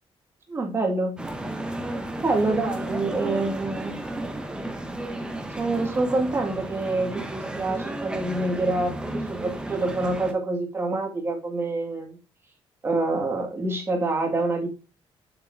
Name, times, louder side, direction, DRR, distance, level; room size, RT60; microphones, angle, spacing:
voice 1, 0.5-1.2 2.2-4.0 5.5-12.2 12.8-14.7, right 2 dB, 25° right, 2 dB, 2.0 m, -26 dB
sound 1, 1.2-10.3, right 1 dB, 10° right, 1.0 m, -33 dB
7.4 x 6.8 x 2.7 m, 0.32 s
cardioid pair, 165°, 10 cm